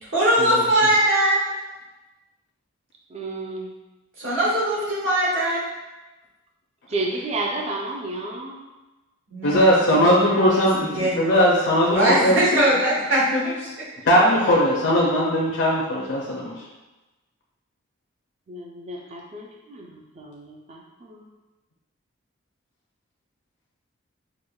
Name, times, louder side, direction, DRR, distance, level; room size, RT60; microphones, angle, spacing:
voice 1, 0.1-1.4 4.2-5.6 9.3-9.7 10.0-11.1 11.9-13.7, right 1 dB, 75° right, -7 dB, 1.2 m, -21 dB
voice 2, 3.1-3.7 6.9-8.6 18.5-21.3, right 2 dB, 30° right, 0 dB, 0.3 m, -32 dB
voice 3, 9.4-12.4 14.1-16.5, equal, 60° left, -4 dB, 0.5 m, -19 dB
4.8 x 2.1 x 2.2 m, 1.1 s
head